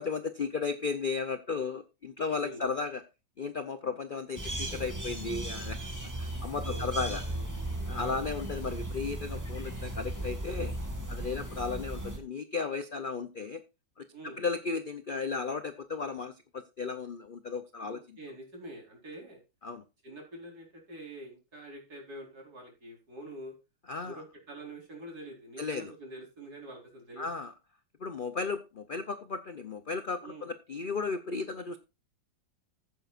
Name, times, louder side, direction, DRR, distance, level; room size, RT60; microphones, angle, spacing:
voice 1, 0.0-3.0 3.4-5.8 6.2-7.2 7.9-10.7 11.1-13.6 14.0-14.1 14.4-18.2 19.6-19.8 23.9-24.2 25.6-25.9 27.2-27.5 28.0-31.8, left 4 dB, 60° left, 11 dB, 0.5 m, -35 dB
sound 1, 4.4-12.2, right 1 dB, 10° right, 2.4 m, -36 dB
voice 2, 6.6-8.2 14.1-14.4 17.8-19.4 20.0-23.5 24.0-27.3 30.2-30.5, right 1 dB, 55° right, 0 dB, 4.9 m, -46 dB
15.0 x 9.3 x 2.5 m, 0.27 s
omnidirectional pair, 2.0 m